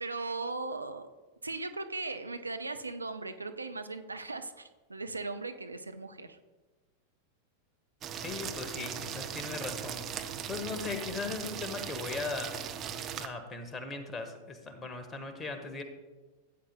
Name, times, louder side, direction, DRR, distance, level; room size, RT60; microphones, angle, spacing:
voice 1, 0.0-1.0 1.4-6.4, right 3 dB, 80° right, 8 dB, 0.6 m, -38 dB
sound 1, 8.0-13.3, right 8 dB, 30° right, 0.7 m, -39 dB
voice 2, 8.1-12.6 13.2-15.8, left 4 dB, 20° left, 7 dB, 1.3 m, -38 dB
15.0 x 9.2 x 2.2 m, 1.3 s
figure-of-eight pair, 90°, 0 cm